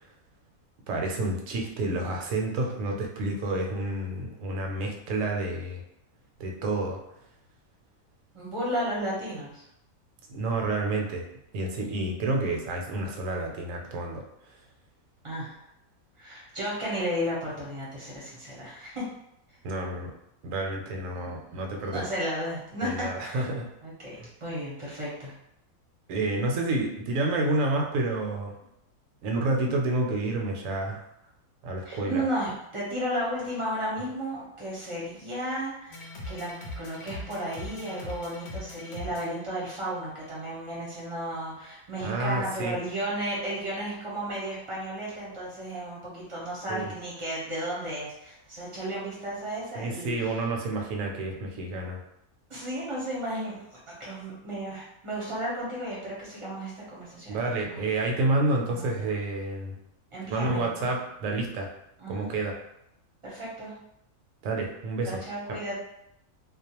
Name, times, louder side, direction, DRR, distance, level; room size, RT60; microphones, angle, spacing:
voice 1, 0.9-5.8 6.4-7.0 10.3-11.3 11.5-14.2 19.6-20.1 20.4-22.1 22.8-23.7 24.2-24.3 26.1-28.5 29.2-31.0 31.6-32.2 42.0-42.8 46.7-46.9 49.7-52.0 57.3-59.7 60.3-61.7 62.1-62.5 64.4-65.6, right 2 dB, 70° right, 1 dB, 0.9 m, -29 dB
voice 2, 8.3-9.6 15.2-15.5 16.2-19.0 21.1-23.4 23.8-24.1 24.4-25.3 31.8-50.1 52.5-53.6 53.9-57.8 58.7-59.1 60.1-60.7 62.0-62.3 63.2-63.7 65.0-65.8, right 1 dB, 30° right, -7 dB, 0.6 m, -34 dB
sound 1, 35.9-40.4, left 1 dB, 65° left, 0.7 m, -40 dB
2.4 x 2.1 x 2.8 m, 0.78 s
omnidirectional pair, 1.5 m